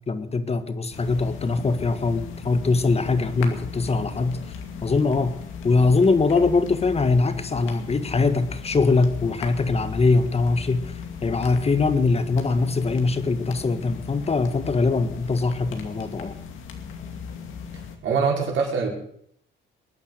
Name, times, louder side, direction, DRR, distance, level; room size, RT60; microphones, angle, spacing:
voice 1, 0.1-4.4 4.8-5.4 5.6-16.4, left 3 dB, 30° left, 11 dB, 1.6 m, -22 dB
sound 1, 0.9-18.0, left 6 dB, 90° left, 2.4 m, -37 dB
voice 2, 18.0-18.9, right 5 dB, 75° right, 0 dB, 5.0 m, -23 dB
21.5 x 9.6 x 6.7 m, 0.68 s
cardioid pair, 90°, 20 cm